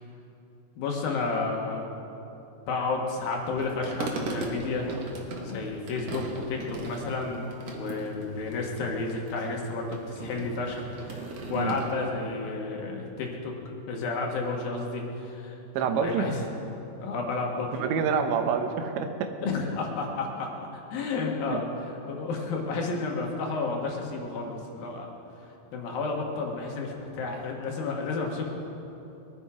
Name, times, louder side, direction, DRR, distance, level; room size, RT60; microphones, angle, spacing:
voice 1, 0.8-1.9 2.7-4.9 5.4-15.6 15.9-16.4 17.0-18.0 19.4-25.1 25.7-28.5, left 3 dB, 65° left, 0 dB, 2.9 m, -31 dB
sound 1, 3.6-11.9, right 3 dB, 60° right, 1.7 m, -38 dB
voice 2, 15.7-16.3 17.8-19.3, right 6 dB, 85° right, 6 dB, 3.3 m, -27 dB
22.0 x 11.5 x 4.9 m, 2.9 s
omnidirectional pair, 5.0 m